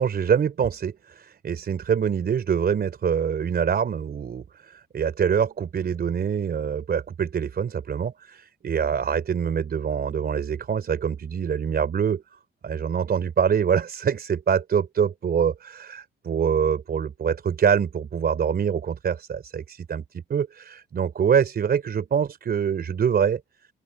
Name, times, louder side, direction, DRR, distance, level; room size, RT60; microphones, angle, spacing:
voice 1, 0.0-12.2 12.6-20.0 20.3-23.4, right 7 dB, 50° right, 4.5 m, -25 dB
open air
cardioid pair, 90°, 20 cm